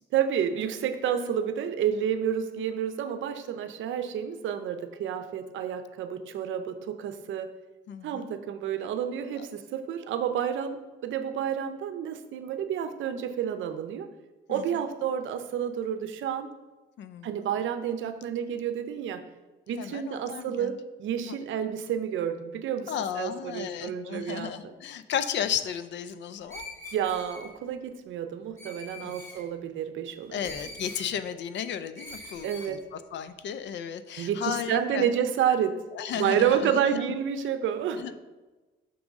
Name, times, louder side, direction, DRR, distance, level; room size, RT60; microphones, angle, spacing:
voice 1, 0.1-7.5 8.0-14.1 14.5-16.5 17.2-19.2 19.7-24.7 26.9-30.4 32.4-32.8 34.2-35.7 36.2-38.1, right 9 dB, 75° right, 9 dB, 0.6 m, -30 dB
voice 2, 7.9-8.3 9.4-9.5 14.5-14.8 17.0-17.4 19.8-20.8 21.3-21.4 22.9-26.6 29.0-29.2 30.3-35.1 35.9-37.0 38.0-38.1, left 9 dB, 65° left, 12 dB, 0.5 m, -34 dB
Screech, 26.5-27.5 28.6-29.4 30.4-31.1 32.0-32.7, left 1 dB, 15° left, 2.0 m, -43 dB
6.1 x 3.6 x 5.1 m, 1.2 s
cardioid pair, 90°, 20 cm